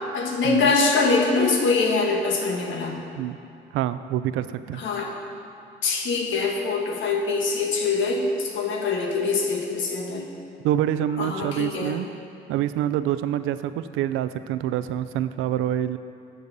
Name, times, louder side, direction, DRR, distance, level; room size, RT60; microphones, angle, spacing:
voice 1, 0.1-3.0 4.8-5.1 5.8-10.3 11.2-12.0, left 4 dB, 75° left, 1 dB, 1.4 m, -23 dB
voice 2, 3.7-4.8 10.6-12.1 12.5-16.0, right 11 dB, 90° right, 13 dB, 0.4 m, -26 dB
12.5 x 6.9 x 4.0 m, 2.5 s
cardioid pair, 90°, 20 cm